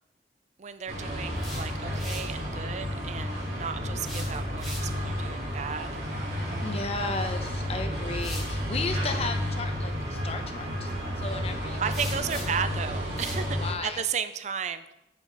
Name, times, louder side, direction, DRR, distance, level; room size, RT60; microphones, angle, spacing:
voice 1, 0.6-5.9 11.8-14.9, right 7 dB, 40° right, 11 dB, 0.4 m, -34 dB
sound 1, 0.9-13.7, equal, 60° right, 2.7 m, -31 dB
sound 2, 1.4-2.4 4.0-5.1 7.2-7.3 8.1-8.6 11.9-12.7 13.2-13.5, equal, ahead, 2.0 m, -41 dB
voice 2, 6.6-11.8 12.3-12.4 13.6-14.0, left 3 dB, 35° left, 6 dB, 0.8 m, -34 dB
8.4 x 7.0 x 4.0 m, 0.88 s
head